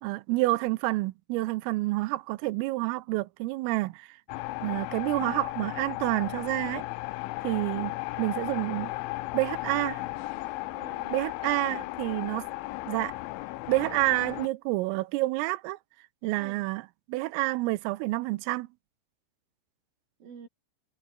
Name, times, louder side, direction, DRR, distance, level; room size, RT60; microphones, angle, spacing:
voice 1, 0.0-4.2 4.6-6.8 7.4-8.9 9.3-10.0 11.1-12.5 12.9-13.2 13.7-15.8 16.2-18.7, right 20 dB, 85° right, 3.4 m, -29 dB
sound 1, 4.3-14.5, left 20 dB, 80° left, 3.0 m, -35 dB
voice 2, 10.7-11.9 16.4-16.6 20.2-20.5, right 6 dB, 45° right, 6.0 m, -49 dB
omnidirectional pair, 5.9 m